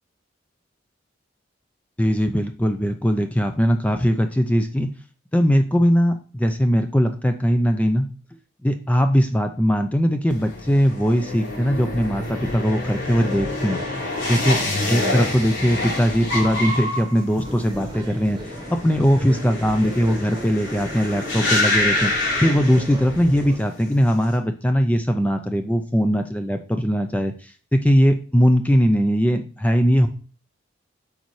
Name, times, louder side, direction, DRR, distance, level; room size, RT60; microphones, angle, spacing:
voice 1, 2.0-4.9 5.3-8.1 8.6-13.8 14.3-14.6 14.9-22.1 22.4-30.1, equal, 10° left, 6 dB, 0.4 m, -20 dB
sound 1, 10.3-23.4 23.7-24.2, left 2 dB, 85° left, 3.7 m, -27 dB
sound 2, 17.4-23.6, right 1 dB, 25° right, 1.0 m, -36 dB
8.2 x 5.3 x 3.2 m, 0.37 s
head